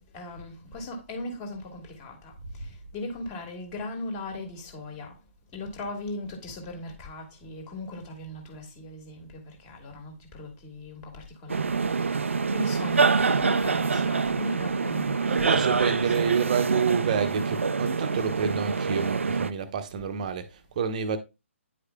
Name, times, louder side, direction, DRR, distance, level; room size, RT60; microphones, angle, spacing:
voice 1, 0.1-2.3 2.6-5.1 5.5-11.7 12.0-16.4, left 1 dB, 20° left, 1.8 m, -38 dB
sound 1, 11.5-19.5, right 4 dB, 65° right, 0.4 m, -26 dB
voice 2, 15.2-21.2, right 6 dB, 35° right, 0.9 m, -28 dB
9.9 x 4.8 x 2.2 m
figure-of-eight pair, 140°, 7 cm